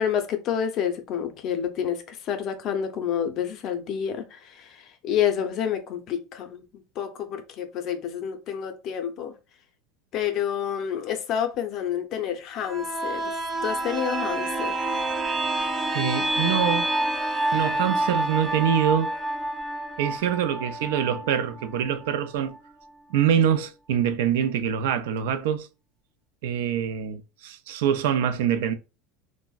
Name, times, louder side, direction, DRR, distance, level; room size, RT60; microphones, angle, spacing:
voice 1, 0.0-6.6 7.0-9.3 10.1-13.3 13.6-14.8, left 9 dB, 45° left, 0.5 m, -29 dB
sound 1, 12.6-22.2 22.5-22.6, right 1 dB, 10° right, 0.4 m, -28 dB
voice 2, 15.9-16.9 17.5-19.2 20.0-22.6 23.1-25.7 26.4-28.7, right 9 dB, 80° right, 0.4 m, -25 dB
3.4 x 2.0 x 2.3 m
supercardioid pair, 140°, 0 cm